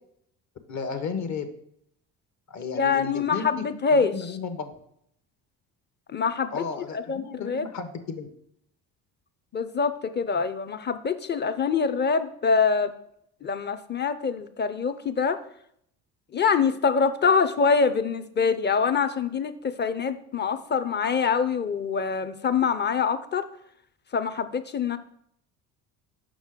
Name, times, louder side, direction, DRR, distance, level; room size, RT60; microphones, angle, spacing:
voice 1, 0.7-1.5 2.5-3.6 4.0-4.7 6.5-8.3, left 5 dB, 45° left, 8 dB, 1.1 m, -33 dB
voice 2, 2.7-4.4 6.1-7.7 9.5-12.9 13.4-15.4 16.3-23.5 24.1-25.0, left 5 dB, 25° left, 11 dB, 0.6 m, -25 dB
6.2 x 5.7 x 3.7 m, 0.70 s
supercardioid pair, 70°, 39 cm